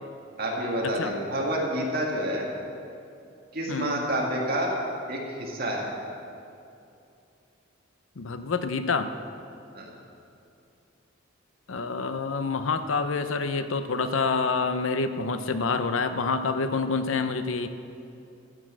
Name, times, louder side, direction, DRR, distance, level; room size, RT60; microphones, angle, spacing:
voice 1, 0.4-2.5 3.5-4.7 5.1-5.9 9.7-9.9, equal, 50° right, -2 dB, 2.1 m, -28 dB
voice 2, 3.7-4.0 8.2-9.1 11.7-17.7, left 4 dB, 80° left, 10 dB, 0.6 m, -27 dB
13.5 x 6.2 x 7.7 m, 2.6 s
head